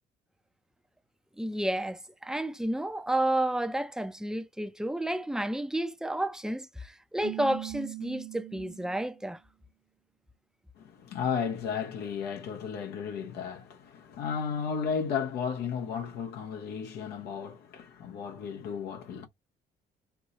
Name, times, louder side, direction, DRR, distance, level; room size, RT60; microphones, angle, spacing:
voice 1, 1.4-9.4, right 1 dB, 5° right, 0.6 m, -31 dB
Keyboard (musical), 7.2-9.2, right 19 dB, 65° right, 0.4 m, -41 dB
voice 2, 10.8-19.3, left 6 dB, 75° left, 0.9 m, -34 dB
4.7 x 2.6 x 4.0 m
cardioid pair, 110°, 17 cm